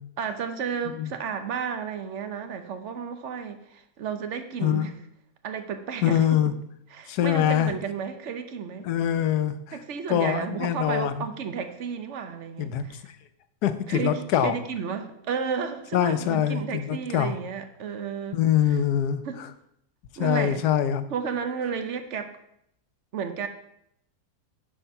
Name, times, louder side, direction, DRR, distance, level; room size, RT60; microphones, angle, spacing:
voice 1, 0.2-4.9 5.4-6.4 6.9-8.9 9.7-13.1 13.9-18.4 19.2-19.4 20.2-20.6 21.1-22.4 23.1-23.5, right 6 dB, 55° right, 1.0 m, -32 dB
voice 2, 6.0-6.5 7.1-7.7 8.8-9.8 10.1-11.3 12.6-13.0 13.6-14.5 15.9-17.4 18.3-19.5 20.2-21.1, left 10 dB, 90° left, 1.2 m, -24 dB
10.0 x 4.5 x 5.7 m
omnidirectional pair, 1.6 m